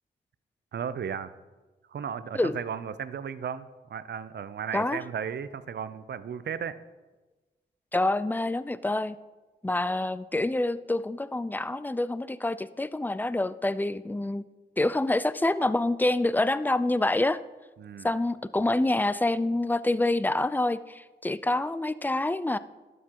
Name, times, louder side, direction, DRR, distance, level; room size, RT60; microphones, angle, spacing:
voice 1, 0.7-1.3 1.9-6.8 17.8-18.1, right 7 dB, 65° right, 14 dB, 0.5 m, -35 dB
voice 2, 7.9-9.2 9.6-14.4 14.8-17.4 18.0-22.6, left 2 dB, 10° left, 15 dB, 0.4 m, -27 dB
12.0 x 8.2 x 2.9 m, 1.2 s
cardioid pair, 50°, 19 cm